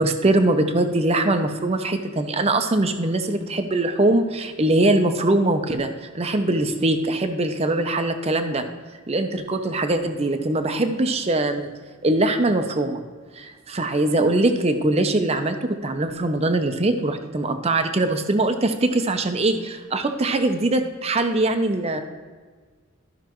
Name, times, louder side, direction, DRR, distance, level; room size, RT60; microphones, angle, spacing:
voice 1, 0.0-5.9 6.1-8.6 9.1-11.7 12.0-13.0 13.4-22.0, right 2 dB, 30° right, 7 dB, 0.6 m, -22 dB
13.5 x 5.8 x 3.0 m, 1.5 s
head